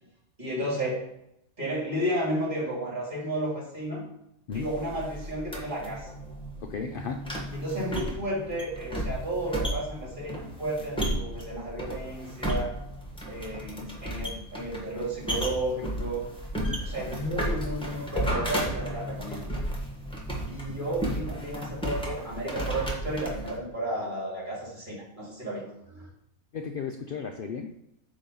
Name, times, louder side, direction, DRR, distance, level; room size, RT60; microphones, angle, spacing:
voice 1, 0.4-1.0 1.6-4.1 4.5-6.1 7.5-12.7 13.3-16.2 16.8-19.5 20.5-26.1, right 1 dB, 35° right, -5 dB, 2.8 m, -32 dB
sound 1, 4.5-23.6, right 1 dB, 5° left, 1.1 m, -34 dB
voice 2, 6.6-7.3 16.6-16.8 26.5-27.7, left 6 dB, 75° left, 4 dB, 0.5 m, -35 dB
8.6 x 3.1 x 5.4 m, 0.80 s
omnidirectional pair, 1.5 m